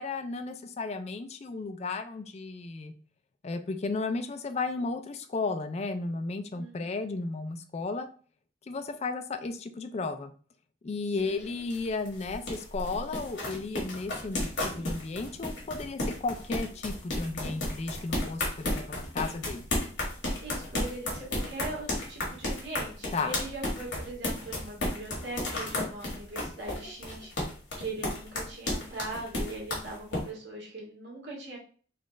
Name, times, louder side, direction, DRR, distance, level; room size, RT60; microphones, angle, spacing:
voice 1, 0.0-2.9 3.4-8.1 8.7-10.3 10.8-19.7 23.1-23.3, left 3 dB, 35° left, 8 dB, 0.4 m, -34 dB
voice 2, 6.5-6.9 11.2-11.5 20.4-27.3 27.8-31.6, right 2 dB, 80° right, -3 dB, 1.7 m, -40 dB
sound 1, 11.2-30.2, left 1 dB, 90° left, 1.5 m, -33 dB
4.0 x 2.4 x 3.1 m, 0.42 s
head